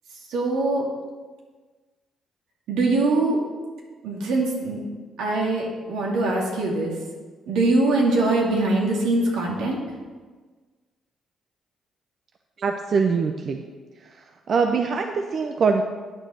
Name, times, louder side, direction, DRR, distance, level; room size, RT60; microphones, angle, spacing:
voice 1, 0.3-0.8 2.7-3.4 4.0-4.8 5.2-6.9 7.5-9.8, right 2 dB, 90° right, -2 dB, 2.3 m, -22 dB
voice 2, 12.6-13.6 14.0-15.8, right 5 dB, 55° right, 5 dB, 0.6 m, -23 dB
9.0 x 6.5 x 6.3 m, 1.4 s
cardioid pair, 90°, 0 cm